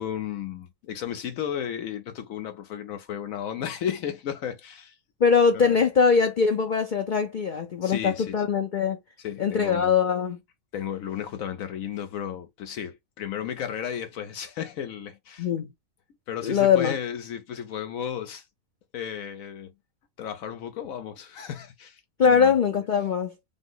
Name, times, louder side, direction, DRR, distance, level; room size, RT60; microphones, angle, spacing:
voice 1, 0.0-5.0 5.5-5.8 7.8-8.4 9.2-9.9 10.7-15.5 16.3-18.5 18.9-19.7 20.2-22.5, left 9 dB, 75° left, 1.0 m, -34 dB
voice 2, 5.2-9.0 9.4-10.4 15.4-15.7 16.4-17.0 22.2-23.3, left 6 dB, 50° left, 0.6 m, -22 dB
5.2 x 2.0 x 3.7 m
omnidirectional pair, 1.5 m